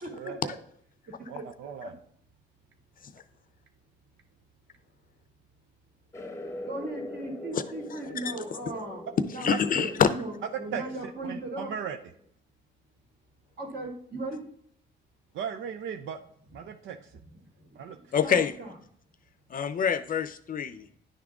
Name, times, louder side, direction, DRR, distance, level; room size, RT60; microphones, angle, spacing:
voice 1, 0.0-0.6 1.3-1.9 6.7-9.1 9.3-11.7 13.6-14.4 17.3-17.4 17.7-17.9 18.2-18.7, right 2 dB, 50° right, 1 dB, 2.2 m, -38 dB
voice 2, 1.3-1.9 9.5-9.6 10.7-12.0 15.3-16.2 16.5-17.0 17.7-18.0, right 7 dB, 75° right, 7 dB, 0.6 m, -37 dB
sound 1, 6.1-12.3, left 1 dB, 15° left, 0.9 m, -43 dB
voice 3, 9.4-10.1 18.1-18.5 19.5-20.8, left 7 dB, 45° left, 11 dB, 0.6 m, -25 dB
10.0 x 3.7 x 3.5 m, 0.65 s
cardioid pair, 90°, 20 cm